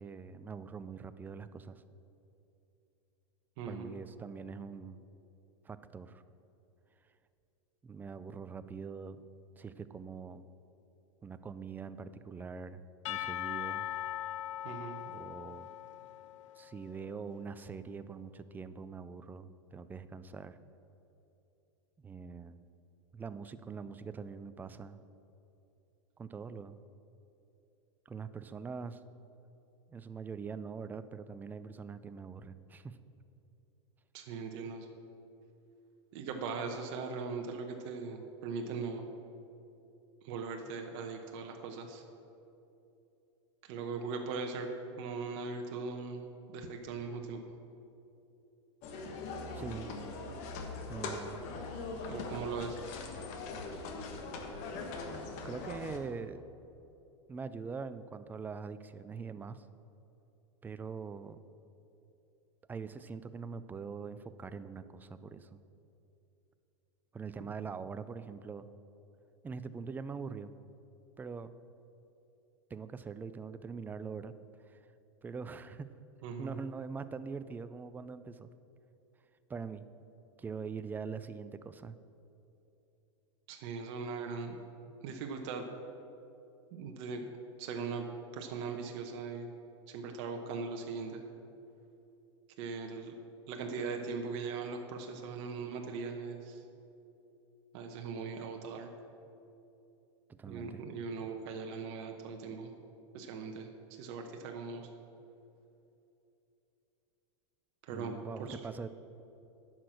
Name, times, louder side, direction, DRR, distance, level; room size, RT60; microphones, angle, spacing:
voice 1, 0.0-1.8 3.7-5.0 5.6-6.2 7.8-9.2 9.6-10.4 11.2-13.9 15.1-15.7 16.6-20.6 22.0-22.6 23.1-25.0 26.2-26.8 28.1-29.0 29.9-33.0 49.5-49.9 50.9-51.4 54.8-56.4 57.3-59.7 60.6-61.4 62.7-65.6 67.1-68.7 69.4-70.5 71.2-71.5 72.7-74.3 74.7-74.8 75.2-75.9 76.4-78.5 79.5-79.8 80.4-82.0 100.3-100.8 107.9-108.9, right 5 dB, 10° right, 13 dB, 0.3 m, -43 dB
voice 2, 3.6-3.9 14.6-15.0 34.1-34.9 36.1-39.0 40.2-42.0 43.6-44.7 45.0-46.3 46.5-47.4 52.1-52.8 76.2-76.5 83.5-84.6 85.0-85.6 86.7-87.2 87.6-88.0 88.3-89.5 89.9-91.2 92.6-93.1 93.5-96.6 97.7-98.9 100.5-102.7 103.1-103.7 104.0-104.9 107.8-108.1 108.4-108.6, right 5 dB, 55° right, 3 dB, 1.0 m, -39 dB
Percussion / Church bell, 13.1-16.9, left 13 dB, 75° left, 0.5 m, -40 dB
sound 1, 48.8-56.0, left 3 dB, 50° left, 1.3 m, -41 dB
10.0 x 6.1 x 6.4 m, 2.8 s
hypercardioid pair, 120°, 16 cm